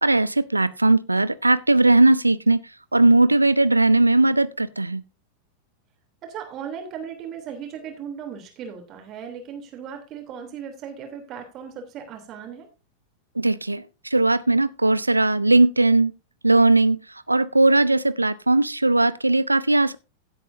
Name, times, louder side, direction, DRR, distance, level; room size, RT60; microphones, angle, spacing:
voice 1, 0.0-2.6 2.9-5.0 13.4-16.1 16.4-17.0 17.3-20.0, right 2 dB, 85° right, 0.7 m, -18 dB
voice 2, 6.2-12.7, right 7 dB, 35° right, 3.2 m, -37 dB
16.5 x 8.3 x 2.7 m
figure-of-eight pair, 90°, 0 cm